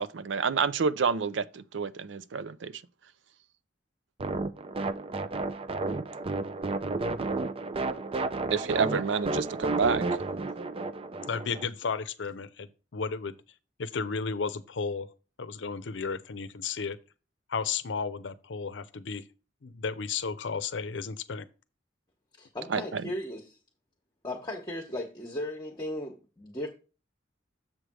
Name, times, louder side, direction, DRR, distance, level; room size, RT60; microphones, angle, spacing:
voice 1, 0.0-2.7 8.5-10.1 22.7-23.0, right 5 dB, 85° right, 0.5 m, -28 dB
sound 1, 4.2-11.6, right 3 dB, 30° right, 0.4 m, -32 dB
voice 2, 11.3-13.4 13.8-15.1 15.4-17.0 17.5-19.2 19.6-21.5, left 5 dB, 80° left, 0.6 m, -33 dB
voice 3, 22.4-23.6 24.2-26.7, left 1 dB, 25° left, 1.0 m, -36 dB
7.4 x 3.3 x 6.1 m
head